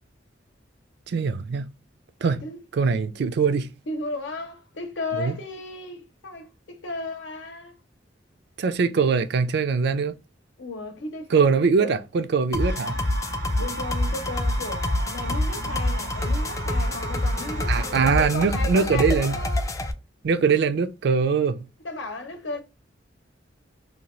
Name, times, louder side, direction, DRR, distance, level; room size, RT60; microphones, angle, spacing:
voice 1, 1.1-1.7 2.2-2.4 2.7-3.7 5.2-5.3 8.6-10.1 11.3-13.0 17.7-19.4 20.2-21.6, right 5 dB, 60° right, 0.4 m, -22 dB
voice 2, 3.9-7.7 10.6-12.0 13.6-19.7 21.8-22.6, left 2 dB, 85° left, 0.8 m, -34 dB
sound 1, 12.5-19.9, left 1 dB, 15° left, 0.3 m, -26 dB
sound 2, 12.6-18.1, right 2 dB, 85° right, 0.9 m, -36 dB
2.8 x 2.2 x 2.9 m
head